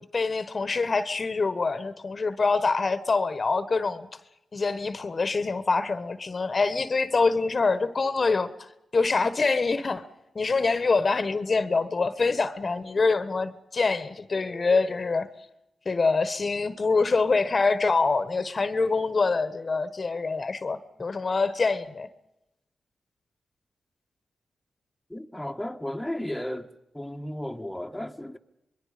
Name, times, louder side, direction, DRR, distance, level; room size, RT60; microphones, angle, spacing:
voice 1, 0.0-4.1 4.5-10.0 10.3-15.3 15.8-22.1, left 4 dB, 45° left, 1.3 m, -25 dB
voice 2, 25.1-26.7 26.9-28.4, left 1 dB, 5° left, 1.5 m, -34 dB
26.5 x 21.5 x 5.1 m
cardioid pair, 50°, 0 cm